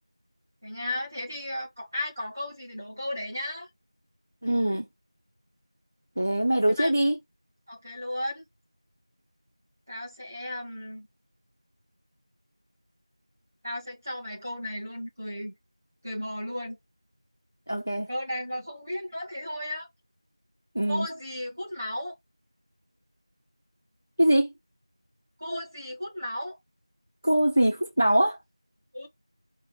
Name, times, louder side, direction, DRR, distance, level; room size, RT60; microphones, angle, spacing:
voice 1, 0.6-3.7 6.8-6.9 7.7-8.4 9.9-11.1 13.6-15.5 16.0-16.8 18.1-19.9 20.9-22.1 25.4-26.6 28.9-29.1, left 1 dB, 25° right, 1.3 m, -34 dB
voice 2, 4.4-4.9 6.2-7.2 17.7-18.1 20.7-21.1 24.2-24.5 27.2-28.4, right 1 dB, 25° left, 0.5 m, -23 dB
4.8 x 2.1 x 4.2 m
figure-of-eight pair, 180°, 3 cm